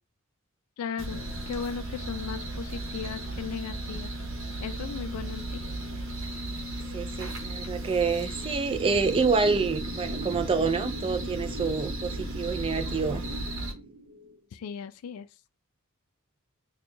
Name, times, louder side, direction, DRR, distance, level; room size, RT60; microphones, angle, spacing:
voice 1, 0.8-4.1 4.6-5.6 14.5-15.3, left 7 dB, 90° left, 0.3 m, -36 dB
sound 1, 1.0-13.7, right 1 dB, 60° right, 0.9 m, -35 dB
sound 2, 6.5-14.4, right 1 dB, 80° right, 0.7 m, -42 dB
voice 2, 6.9-13.2, right 4 dB, 25° right, 0.3 m, -27 dB
4.4 x 2.2 x 2.6 m
head